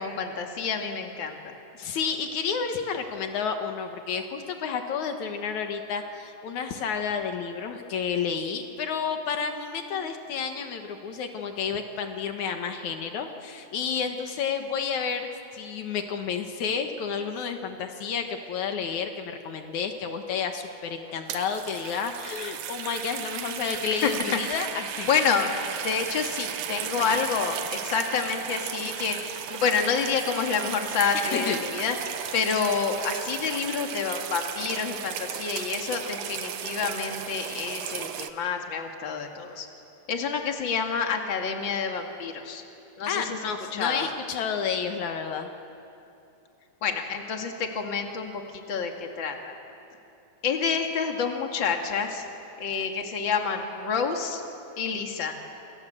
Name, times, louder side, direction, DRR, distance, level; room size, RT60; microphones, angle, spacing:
voice 1, 0.0-1.5 24.0-24.4 25.1-25.5 25.8-27.6 27.8-32.0 32.3-39.7 40.1-42.6 43.0-43.4 43.7-44.1 46.8-49.5 50.4-52.2 52.6-54.4 54.8-55.3, left 6 dB, 40° left, 3 dB, 2.7 m, -28 dB
voice 2, 1.8-15.3 15.5-25.1 31.1-31.6 43.1-45.5, left 6 dB, 75° left, 5 dB, 2.8 m, -31 dB
sound 1, 21.1-38.3, right 9 dB, 90° right, 2.6 m, -35 dB
27.5 x 27.5 x 7.8 m, 2.8 s
omnidirectional pair, 3.4 m